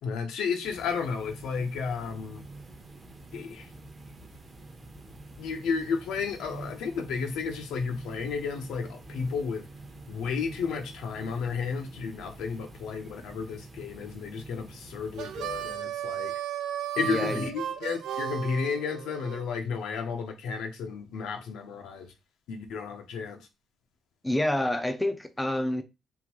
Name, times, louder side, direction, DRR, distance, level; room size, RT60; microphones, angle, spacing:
voice 1, 0.0-2.4 3.3-3.7 5.4-9.7 10.1-16.3 17.0-22.1 22.5-23.5, left 5 dB, 90° left, 0.9 m, -32 dB
sound 1, 0.6-15.8, right 2 dB, 25° right, 0.7 m, -47 dB
Harmonica, 15.1-19.4, right 10 dB, 80° right, 0.5 m, -35 dB
voice 2, 17.0-17.5 24.2-25.8, left 1 dB, 5° left, 0.4 m, -28 dB
3.7 x 2.6 x 4.4 m
cardioid pair, 140°, 0 cm